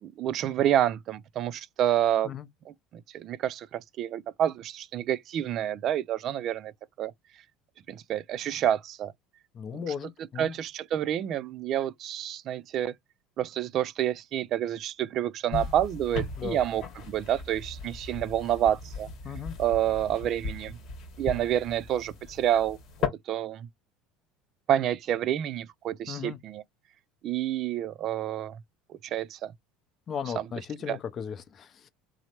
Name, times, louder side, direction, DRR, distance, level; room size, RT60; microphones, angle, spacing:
voice 1, 0.0-2.3 2.7-6.7 7.0-7.1 7.9-9.1 9.7-9.9 10.4-12.9 13.4-19.1 19.6-20.8 21.2-22.8 23.3-23.7 24.7-26.6 27.2-28.6 28.9-29.5 30.4-30.5 30.9-31.0, right 11 dB, 50° right, 0.3 m, -28 dB
voice 2, 9.5-10.6 16.4-16.6 19.2-19.6 26.1-26.4 30.1-31.9, left 7 dB, 40° left, 0.6 m, -36 dB
sound 1, 15.5-23.1, left 5 dB, 55° left, 1.1 m, -37 dB
3.1 x 2.0 x 2.9 m
supercardioid pair, 95°, 0 cm